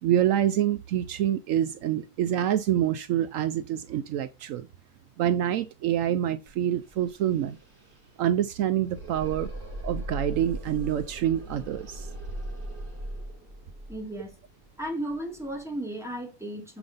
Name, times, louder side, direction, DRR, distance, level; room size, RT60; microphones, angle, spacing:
voice 1, 0.0-4.7 5.2-7.6 8.2-9.5 9.8-12.1, right 11 dB, 75° right, 0.9 m, -26 dB
Cthulhu growl, 6.5-6.6 6.8-15.6, right 1 dB, 50° right, 3.1 m, -39 dB
voice 2, 13.9-14.4 14.8-16.8, right 1 dB, ahead, 2.5 m, -34 dB
7.1 x 4.9 x 3.9 m
omnidirectional pair, 1.4 m